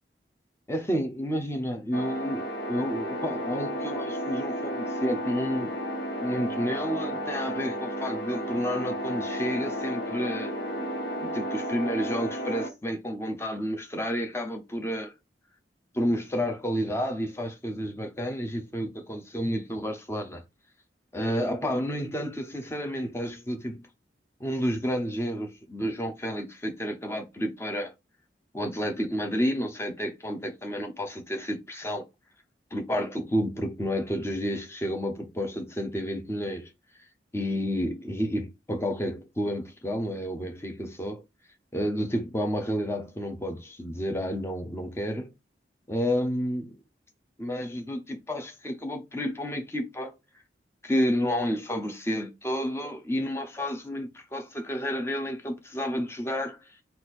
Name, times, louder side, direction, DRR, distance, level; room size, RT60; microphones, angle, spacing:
voice 1, 0.7-5.7 6.2-10.9 11.2-15.1 15.9-20.4 21.1-23.8 24.4-27.9 28.5-32.0 32.7-36.7 37.3-41.2 41.7-45.3 45.9-46.8 47.4-50.1 50.8-56.6, equal, 15° left, 0.8 m, -30 dB
sound 1, 1.9-12.7, equal, 65° left, 1.4 m, -33 dB
4.1 x 2.6 x 4.1 m
head